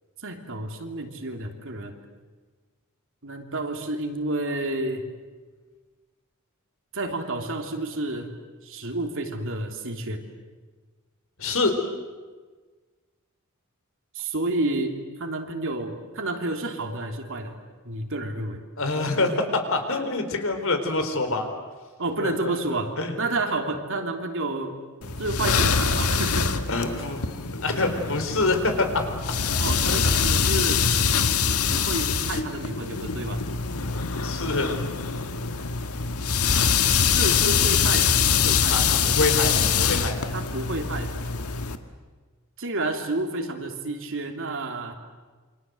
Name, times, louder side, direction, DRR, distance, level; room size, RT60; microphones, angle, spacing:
voice 1, 0.2-1.9 3.2-5.1 6.9-8.4 8.6-10.2 14.1-17.5 17.8-18.6 22.0-24.7 25.2-26.5 29.6-30.8 31.7-33.4 36.8-38.8 40.3-41.1 42.6-44.9, right 2 dB, 65° right, 4 dB, 3.1 m, -30 dB
voice 2, 11.4-11.7 18.8-21.5 22.2-23.1 26.7-28.9 29.5-29.6 29.9-30.1 34.2-34.7 38.7-40.2, left 3 dB, 65° left, 6 dB, 4.0 m, -26 dB
sound 1, 25.0-41.8, left 6 dB, 90° left, 1.6 m, -24 dB
28.5 x 25.5 x 7.9 m, 1.4 s
head